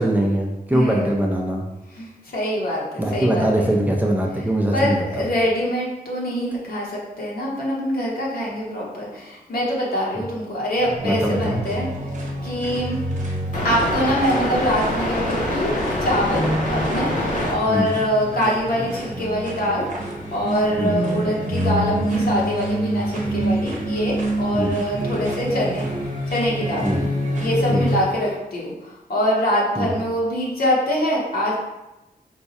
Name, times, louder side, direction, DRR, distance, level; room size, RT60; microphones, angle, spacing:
voice 1, 0.0-1.6 3.0-5.3 10.2-10.3 11.0-11.6 17.7-17.9 20.8-20.9 24.5-24.7 26.8-27.0 27.7-27.9 29.8-29.9, right 1 dB, 10° right, -1 dB, 0.5 m, -22 dB
voice 2, 0.7-1.1 1.9-3.7 4.7-11.9 12.4-13.0 13.6-25.9 26.3-26.9 27.4-31.5, equal, 70° left, -4 dB, 1.2 m, -24 dB
sound 1, 10.8-27.9, right 1 dB, 50° right, 0.8 m, -27 dB
sound 2, 13.5-17.5 17.9-18.8 19.1-19.2 19.4-21.3 21.7-28.3, left 1 dB, 50° left, 0.9 m, -28 dB
4.7 x 2.3 x 4.1 m, 0.98 s
wide cardioid pair, 155°, 16 cm